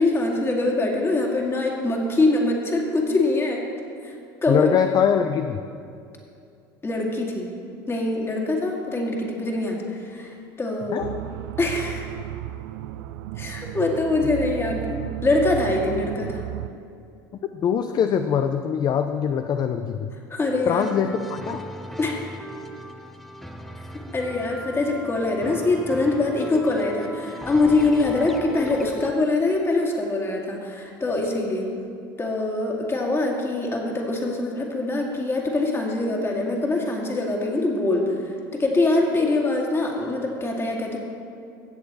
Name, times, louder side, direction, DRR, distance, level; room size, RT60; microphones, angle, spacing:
voice 1, 0.0-3.6 4.0-4.2 4.4-4.7 6.8-7.5 7.9-11.0 11.6-12.1 13.4-16.5 20.3-20.9 22.0-22.3 24.1-31.7 32.2-38.2 38.5-41.0, left 2 dB, 20° left, 0 dB, 2.1 m, -24 dB
voice 2, 4.5-5.6 10.9-11.1 17.5-20.1 20.7-21.6, left 8 dB, 40° left, 7 dB, 0.5 m, -23 dB
sound 1, 11.0-16.7, right 15 dB, 75° right, 0.4 m, -34 dB
sound 2, 20.8-29.1, left 1 dB, ahead, 0.8 m, -38 dB
17.0 x 6.6 x 4.2 m, 2.5 s
hypercardioid pair, 90°, 11 cm